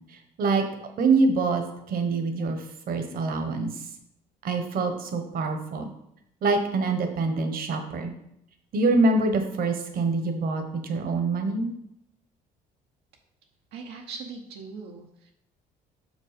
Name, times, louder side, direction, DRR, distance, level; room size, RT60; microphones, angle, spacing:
voice 1, 0.1-0.6 1.0-3.9 4.4-5.9 6.4-8.1 8.7-11.7, right 3 dB, 60° right, 6 dB, 1.2 m, -25 dB
voice 2, 13.7-15.3, right 4 dB, 85° right, 1 dB, 1.0 m, -40 dB
6.1 x 5.3 x 5.1 m, 0.77 s
cardioid pair, 110°, 17 cm